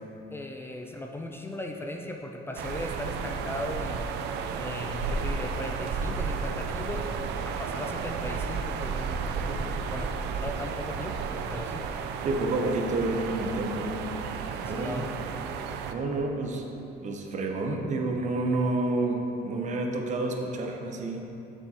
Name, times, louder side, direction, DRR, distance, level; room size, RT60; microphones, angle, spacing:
voice 1, 0.3-4.1 4.6-7.1 7.4-12.0 14.6-15.1, left 1 dB, 15° left, 2 dB, 0.4 m, -37 dB
sound 1, 2.6-15.9, right 5 dB, 85° right, 0.4 m, -33 dB
voice 2, 12.2-13.9 14.6-15.1 15.9-16.6 17.0-21.2, right 2 dB, 45° right, 2 dB, 0.8 m, -29 dB
7.0 x 6.9 x 2.9 m, 2.9 s
cardioid pair, 110°, 17 cm